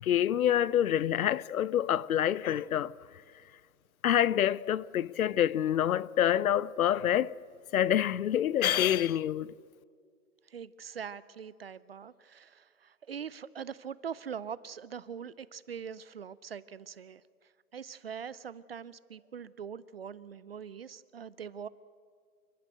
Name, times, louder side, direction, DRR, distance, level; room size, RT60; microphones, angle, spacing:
voice 1, 0.0-2.9 4.0-7.3 7.7-9.5, left 10 dB, 65° left, 0.7 m, -27 dB
voice 2, 10.5-17.2 17.7-21.7, right 7 dB, 45° right, 0.5 m, -42 dB
29.0 x 12.5 x 7.9 m
hypercardioid pair, 155°, 46 cm